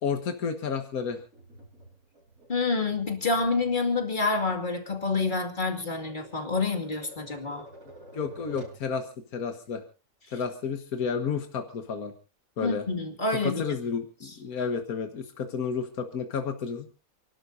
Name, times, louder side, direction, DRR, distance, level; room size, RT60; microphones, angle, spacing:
voice 1, 0.0-1.2 8.1-9.8 10.3-12.1 12.6-12.8 13.3-17.0, left 6 dB, 80° left, 6 dB, 1.9 m, -31 dB
Tap, 1.3-8.8, right 1 dB, 65° right, 6.4 m, -49 dB
voice 2, 2.5-7.7 12.6-13.8 14.2-14.3, left 3 dB, 30° left, 5 dB, 2.5 m, -28 dB
29.5 x 12.5 x 2.7 m, 0.31 s
omnidirectional pair, 1.5 m